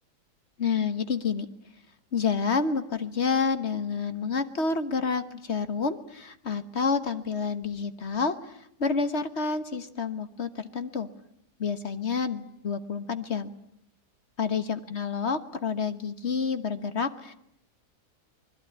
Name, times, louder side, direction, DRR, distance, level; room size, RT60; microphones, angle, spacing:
voice 1, 0.6-1.5 2.1-8.5 8.8-11.1 11.6-13.5 14.4-17.3, left 5 dB, 45° left, 11 dB, 1.4 m, -29 dB
26.5 x 21.0 x 9.8 m, 0.74 s
omnidirectional pair, 1.7 m